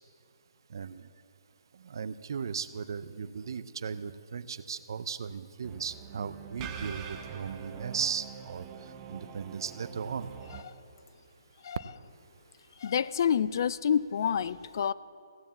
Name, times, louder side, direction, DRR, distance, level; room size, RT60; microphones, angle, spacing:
voice 1, 0.7-1.0 1.8-8.6 9.1-10.3, right 6 dB, 60° right, 14 dB, 0.5 m, -36 dB
sound 1, 5.6-10.6, right 7 dB, 20° right, 0.8 m, -44 dB
voice 2, 12.8-14.9, left 8 dB, 55° left, 19 dB, 0.3 m, -28 dB
16.0 x 7.1 x 7.4 m, 2.6 s
hypercardioid pair, 150°, 2 cm